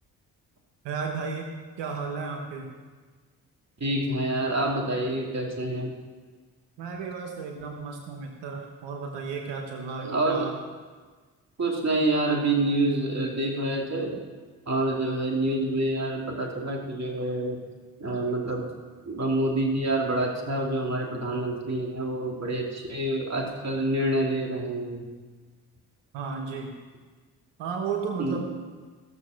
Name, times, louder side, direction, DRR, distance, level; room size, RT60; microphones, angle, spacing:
voice 1, 0.8-1.5 1.8-2.8 6.8-10.5 26.1-26.8 27.6-28.5, right 5 dB, 85° right, 3 dB, 1.2 m, -34 dB
voice 2, 3.8-5.9 10.0-10.5 11.6-14.1 14.7-17.6 18.0-18.7 19.0-25.0 28.2-28.4, right 1 dB, 40° right, 0 dB, 2.7 m, -27 dB
15.0 x 6.9 x 6.4 m, 1.4 s
supercardioid pair, 55°, 41 cm